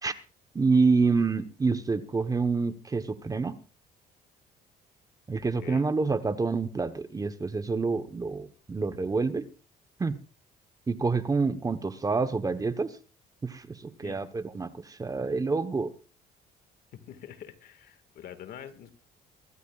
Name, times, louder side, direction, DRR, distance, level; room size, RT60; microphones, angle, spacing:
voice 1, 0.5-3.5 5.3-9.4 10.0-10.2 10.9-12.9 13.4-15.9, right 4 dB, 20° right, 10 dB, 1.0 m, -27 dB
voice 2, 5.4-5.8 14.0-14.2 16.9-18.9, left 9 dB, 65° left, 10 dB, 1.9 m, -45 dB
24.0 x 12.5 x 2.4 m, 0.34 s
cardioid pair, 110°, 17 cm